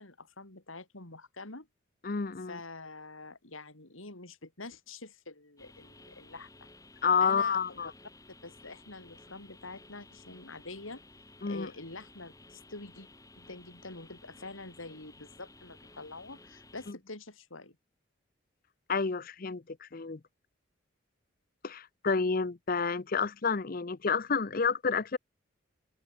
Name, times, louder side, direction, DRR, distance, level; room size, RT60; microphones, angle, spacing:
voice 1, 0.0-1.7 2.5-6.7 7.2-7.9 8.4-11.0 11.4-13.1 13.4-17.8, left 3 dB, 80° left, 4.4 m, -46 dB
voice 2, 2.0-2.6 7.0-7.9 11.4-11.7 18.9-20.2 21.6-25.2, left 5 dB, 45° left, 0.7 m, -29 dB
sound 1, 5.6-16.9, left 2 dB, 15° left, 7.2 m, -55 dB
open air
head